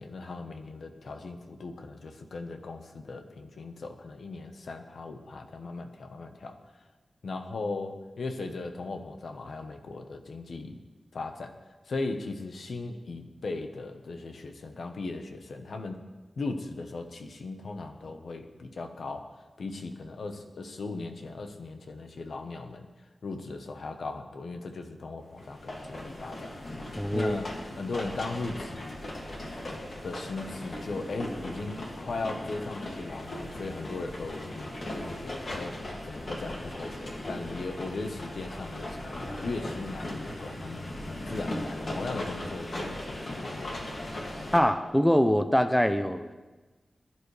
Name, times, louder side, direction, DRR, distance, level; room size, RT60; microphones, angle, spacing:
voice 1, 0.0-6.5 7.2-10.8 11.1-11.5 11.8-16.0 16.4-22.9 23.2-26.5 27.1-28.9 30.0-35.8 36.0-40.9 41.2-44.1, left 3 dB, 80° left, 6 dB, 1.1 m, -38 dB
sound 1, 25.4-44.6, left 1 dB, 55° left, 2.3 m, -38 dB
voice 2, 27.0-27.3 44.5-46.3, equal, 5° left, 9 dB, 0.6 m, -23 dB
21.0 x 11.0 x 3.3 m, 1.2 s
wide cardioid pair, 130°, 0 cm